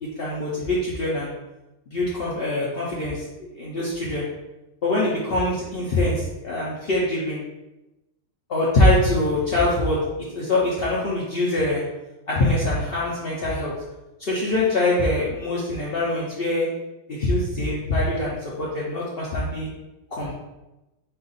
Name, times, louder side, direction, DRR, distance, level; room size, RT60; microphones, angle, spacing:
voice 1, 0.0-1.3 1.9-4.3 4.8-7.4 8.5-10.0 10.3-11.8 12.3-13.7 14.2-16.7 17.1-19.7 20.1-20.3, left 1 dB, 75° left, -6 dB, 0.5 m, -23 dB
4.4 x 2.4 x 4.0 m, 0.99 s
omnidirectional pair, 2.0 m